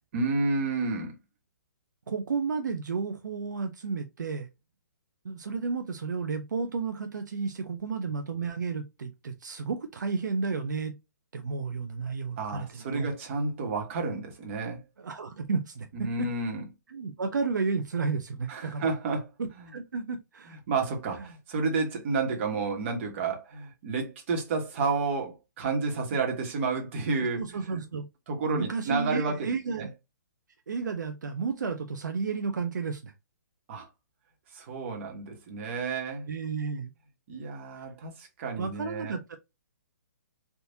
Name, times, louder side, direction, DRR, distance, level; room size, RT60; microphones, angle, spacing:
voice 1, 0.1-1.1 12.4-14.8 15.9-16.6 18.5-19.3 19.6-19.7 20.5-27.8 28.3-29.9 33.7-33.9 34.5-36.3 37.3-39.1, right 4 dB, 40° right, 1.3 m, -31 dB
voice 2, 2.1-4.5 5.2-11.0 11.3-13.1 15.0-16.3 16.9-18.9 19.4-20.6 21.2-21.3 27.4-28.1 28.5-29.9 30.7-33.1 36.3-36.9 37.8-37.9 38.6-39.4, right 4 dB, 80° right, 0.5 m, -32 dB
3.5 x 2.6 x 2.6 m
hypercardioid pair, 145°, 10 cm